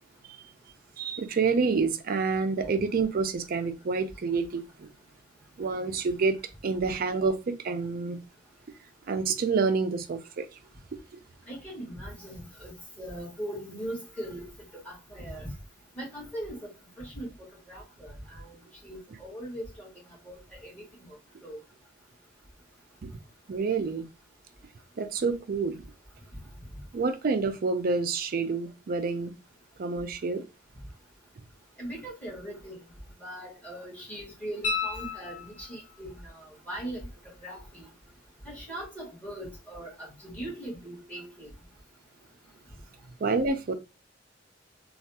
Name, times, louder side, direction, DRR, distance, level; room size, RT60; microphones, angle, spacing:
voice 1, 1.0-4.9 5.6-6.4 6.6-8.2 9.1-10.6 10.9-11.2 23.0-23.1 23.5-24.1 25.0-25.8 26.9-29.4 29.8-30.4 43.2-43.8, right 4 dB, 50° right, 0.4 m, -28 dB
voice 2, 11.5-12.7 13.0-14.5 14.7-15.5 16.0-16.7 17.0-17.3 17.7-18.6 18.8-19.9 20.3-21.6 31.8-32.8 33.2-37.1 37.4-37.9 38.4-41.5, right 1 dB, 10° left, 1.8 m, -40 dB
sound 1, 34.6-36.0 38.8-38.9, left 4 dB, 45° left, 0.6 m, -33 dB
3.3 x 2.3 x 2.7 m
head